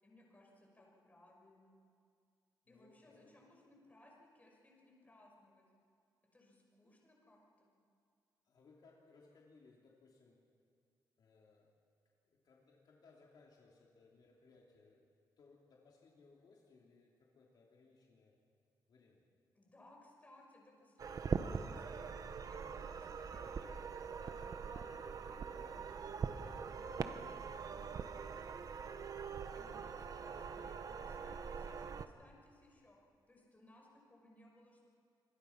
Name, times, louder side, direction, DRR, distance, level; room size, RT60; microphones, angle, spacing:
voice 1, 0.0-1.8 2.7-5.6 6.3-7.7 19.5-33.0 33.3-34.8, left 1 dB, 20° left, -1 dB, 5.9 m, -64 dB
voice 2, 2.7-3.3 6.8-6.9 8.4-10.4 11.2-11.7 12.2-15.0 15.4-18.3 18.9-19.2, left 4 dB, 60° left, -2 dB, 3.1 m, -65 dB
sound 1, 21.0-32.1, right 6 dB, 50° right, 1.0 m, -43 dB
27.0 x 22.5 x 5.9 m, 2.3 s
wide cardioid pair, 130°, 8 cm